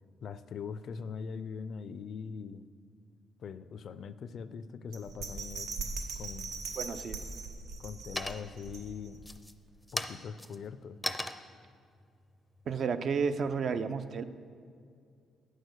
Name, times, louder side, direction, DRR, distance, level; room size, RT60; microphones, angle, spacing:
voice 1, 0.2-2.7 3.4-5.7 6.2-6.5 7.8-9.2 9.9-11.0, left 6 dB, 60° left, 14 dB, 0.4 m, -42 dB
Bell, 4.9-9.3 9.7-9.8, right 4 dB, 85° right, 1.2 m, -40 dB
sound 1, 6.5-7.1 7.5-8.7 9.2-13.6, left 1 dB, 5° left, 0.5 m, -39 dB
voice 2, 6.8-7.2 12.7-14.2, right 5 dB, 55° right, 10 dB, 0.5 m, -32 dB
8.8 x 6.4 x 6.6 m, 2.3 s
cardioid pair, 90°, 0 cm